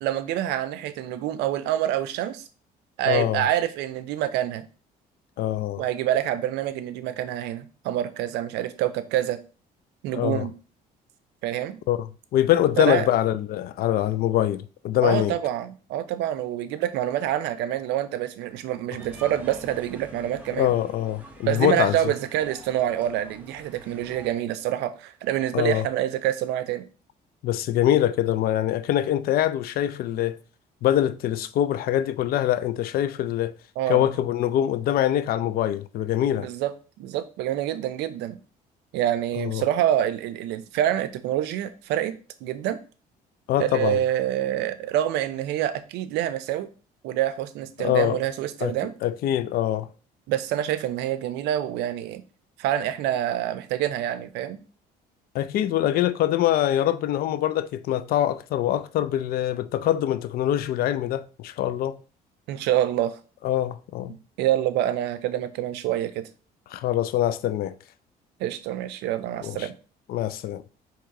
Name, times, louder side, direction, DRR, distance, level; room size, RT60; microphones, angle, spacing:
voice 1, 0.0-2.4 3.0-4.6 5.8-9.4 10.0-10.5 11.4-11.8 12.8-13.1 15.0-20.7 21.4-26.8 33.8-34.0 36.4-36.7 37.0-38.4 38.9-42.1 42.4-42.8 43.6-46.7 47.0-48.9 50.3-52.2 52.6-54.6 62.5-63.2 64.4-66.2 68.4-69.7, right 12 dB, 85° right, 0.5 m, -26 dB
voice 2, 3.1-3.4 5.4-5.8 10.1-10.5 11.9-15.4 20.6-22.0 25.5-25.9 27.4-30.4 30.8-33.5 33.9-36.5 39.4-39.6 43.5-44.0 47.8-48.2 48.6-49.9 55.3-62.0 63.4-64.2 66.7-67.7 69.4-69.7 70.1-70.6, left 12 dB, 65° left, 0.4 m, -24 dB
sound 1, 19.0-24.3, right 1 dB, 10° right, 0.9 m, -46 dB
4.5 x 3.0 x 3.6 m
cardioid pair, 110°, 17 cm